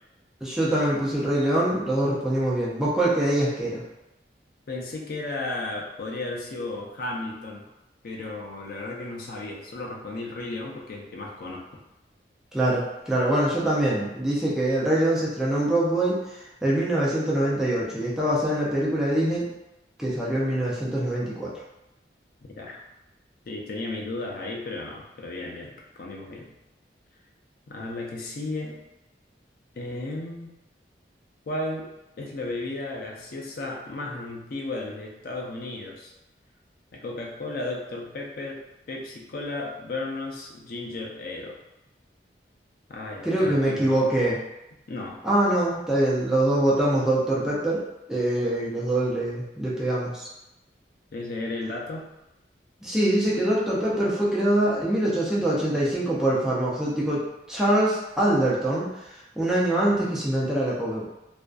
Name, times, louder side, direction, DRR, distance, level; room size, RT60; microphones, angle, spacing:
voice 1, 0.4-3.8 12.5-19.4 20.0-21.5 43.2-44.4 45.2-47.8 48.1-50.2 52.8-58.9 59.4-61.1, right 1 dB, 5° right, -7 dB, 0.4 m, -24 dB
voice 2, 4.7-7.7 8.0-11.7 22.6-22.8 23.5-25.7 26.0-26.5 27.7-28.8 29.7-30.5 31.5-31.9 32.2-36.1 36.9-41.6 42.9-44.0 44.9-45.2 51.1-52.0, left 2 dB, 55° left, -1 dB, 0.5 m, -34 dB
2.5 x 2.2 x 2.3 m, 0.92 s
head